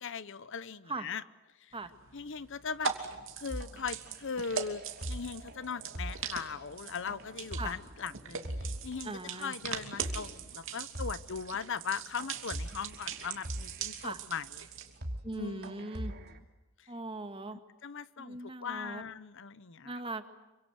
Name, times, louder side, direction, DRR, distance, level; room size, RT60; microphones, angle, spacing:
voice 1, 0.0-1.2 1.6-1.7 2.1-2.9 3.4-14.7 15.3-16.4 16.8-16.9 17.8-20.0, left 6 dB, 60° left, 17 dB, 0.8 m, -39 dB
sound 1, 1.7-15.0, right 7 dB, 65° right, 2.9 m, -41 dB
sound 2, 3.5-9.0 9.4-9.5 9.8-10.3 10.6-10.7 10.9-11.4 11.9-12.0 12.2-14.1 14.5-14.6 14.9-15.3 15.6-16.4, equal, 50° right, 2.9 m, -41 dB
voice 2, 9.0-9.5 14.0-14.2 15.2-16.1 16.9-17.6 18.2-19.0 19.9-20.3, right 2 dB, 25° right, 9 dB, 1.8 m, -39 dB
27.0 x 25.0 x 8.0 m, 1.1 s
head